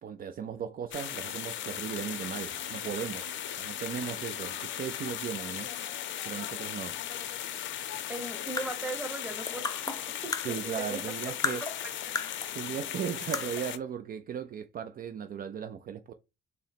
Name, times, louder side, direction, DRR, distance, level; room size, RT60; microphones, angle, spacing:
voice 1, 0.0-3.3 3.6-7.0 10.4-11.7 12.5-16.1, right 8 dB, 45° right, 0.4 m, -37 dB
sound 1, 0.9-13.8, left 11 dB, 70° left, 0.5 m, -37 dB
sound 2, 1.1-11.2 11.5-11.6, right 5 dB, 30° right, 1.5 m, -57 dB
voice 2, 8.1-11.3, right 3 dB, 10° right, 1.0 m, -39 dB
sound 3, 8.3-11.1 11.4-12.6 12.9-13.0 13.3-13.8, left 4 dB, 20° left, 0.4 m, -35 dB
3.9 x 2.0 x 4.0 m
cardioid pair, 90°, 20 cm